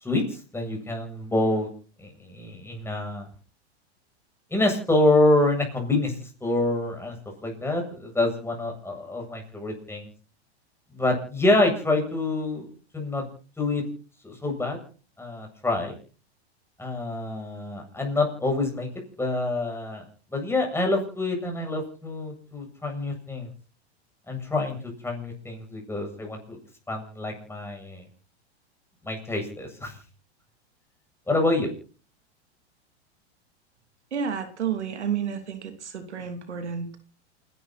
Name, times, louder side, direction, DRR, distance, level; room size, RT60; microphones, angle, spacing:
voice 1, 0.0-1.7 2.0-3.3 4.5-7.2 7.4-10.1 10.9-12.7 12.9-13.2 13.6-13.8 14.2-14.8 15.2-15.9 16.8-18.9 19.2-20.1 20.3-23.5 24.3-24.8 25.0-26.6 26.9-28.0 29.0-29.9 31.3-31.7, left 2 dB, 5° left, 1 dB, 7.9 m, -26 dB
voice 2, 34.1-37.0, right 7 dB, 90° right, 7 dB, 3.2 m, -31 dB
28.5 x 12.0 x 4.2 m, 0.40 s
hypercardioid pair, 115°, 33 cm